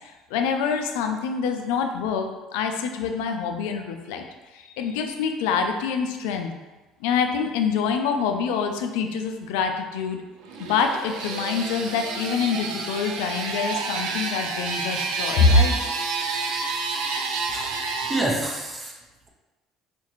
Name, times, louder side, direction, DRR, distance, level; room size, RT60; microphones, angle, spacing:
voice 1, 0.0-2.3 2.5-4.2 4.5-6.5 7.0-10.2 10.6-15.8, left 5 dB, 85° left, 5 dB, 0.4 m, -25 dB
sound 1, 10.4-18.2, right 4 dB, 80° right, 0.5 m, -29 dB
voice 2, 17.5-18.9, right 1 dB, 20° right, -1 dB, 0.8 m, -28 dB
4.2 x 2.4 x 3.0 m, 1.2 s
supercardioid pair, 90°, 0 cm